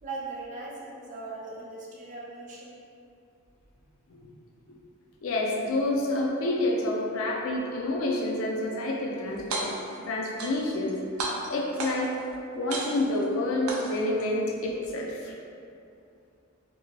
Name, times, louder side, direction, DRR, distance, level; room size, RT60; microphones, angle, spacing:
voice 1, 0.0-2.8, right 3 dB, 35° right, -5 dB, 0.4 m, -39 dB
voice 2, 5.2-9.7 10.0-12.1 12.5-15.4, left 1 dB, 75° left, -1 dB, 0.5 m, -28 dB
sound 1, 9.4-10.0 10.4-10.9 11.2-12.2 12.7-13.2 13.7-14.2, right 2 dB, 90° right, 0.4 m, -33 dB
2.6 x 2.6 x 2.9 m, 2.5 s
head